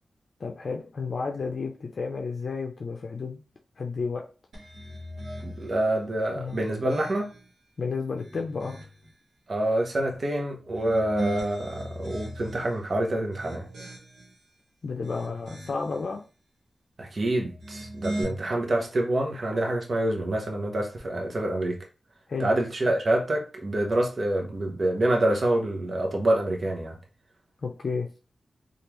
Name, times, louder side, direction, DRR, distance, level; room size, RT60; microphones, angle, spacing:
voice 1, 0.4-3.4 3.8-4.2 6.3-6.6 7.8-8.8 14.8-16.2 18.1-18.5 22.3-22.5 27.6-28.1, left 4 dB, 60° left, 0.5 m, -32 dB
sound 1, 4.5-5.8 6.4-7.5 8.0-9.1 10.6-12.7 13.2-14.4 14.9-16.0 17.4-18.2, right 1 dB, 90° right, 1.1 m, -39 dB
voice 2, 5.4-7.3 9.5-13.9 17.0-21.8 22.4-26.9, right 1 dB, 50° right, 0.8 m, -27 dB
3.2 x 2.4 x 3.0 m
cardioid pair, 70°, 0 cm